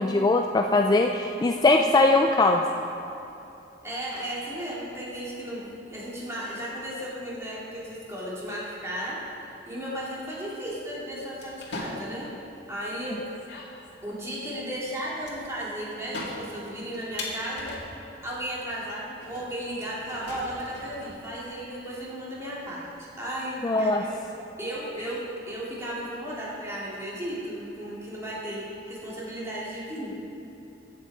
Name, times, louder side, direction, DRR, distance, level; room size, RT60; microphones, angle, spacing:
voice 1, 0.0-2.6 23.6-24.0, left 2 dB, 20° left, 3 dB, 0.3 m, -21 dB
voice 2, 3.8-9.2 9.7-12.3 12.7-13.2 14.0-17.7 18.2-24.1 24.6-30.1, equal, 15° right, -7 dB, 2.6 m, -35 dB
sound 1, 11.4-12.2 13.1-13.2 13.3-14.2 15.2-15.6 15.9-18.1 18.5-18.6 19.2-21.5, left 2 dB, 75° left, 2.0 m, -40 dB
15.0 x 7.2 x 4.8 m, 2.8 s
head